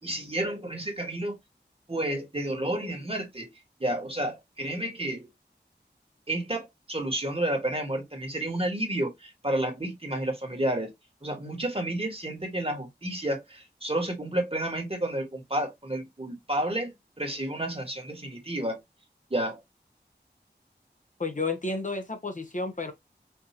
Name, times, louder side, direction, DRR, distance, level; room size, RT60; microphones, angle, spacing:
voice 1, 0.0-1.4 1.9-3.5 3.8-5.3 6.3-10.9 11.2-16.9 17.2-18.8 19.3-19.6, right 1 dB, 35° right, 1.5 m, -30 dB
voice 2, 21.2-22.9, left 3 dB, 45° left, 0.8 m, -31 dB
4.5 x 2.7 x 2.8 m
wide cardioid pair, 50°, 18 cm